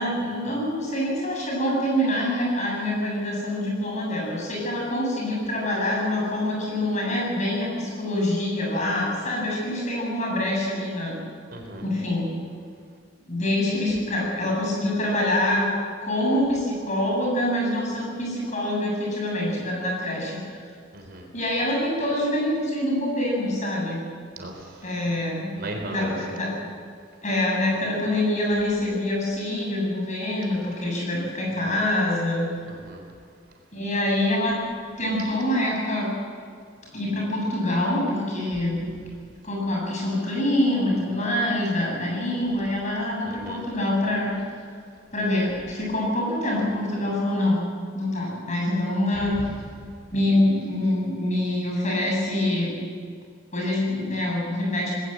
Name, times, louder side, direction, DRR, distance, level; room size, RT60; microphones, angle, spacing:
voice 1, 0.0-11.2 11.8-12.3 13.3-15.7 16.0-20.5 21.3-24.0 24.8-25.5 25.9-26.5 27.2-32.6 33.7-34.6 35.0-36.1 36.9-38.9 39.4-44.4 45.1-49.5 50.1-52.7 53.5-54.9, left 1 dB, 35° left, -2 dB, 7.5 m, -25 dB
voice 2, 11.5-11.9 20.9-21.3 24.4-24.9 25.6-26.4 32.6-33.0 43.3-43.6, right 1 dB, 50° right, 2 dB, 3.8 m, -37 dB
20.5 x 19.0 x 8.0 m, 2.1 s
head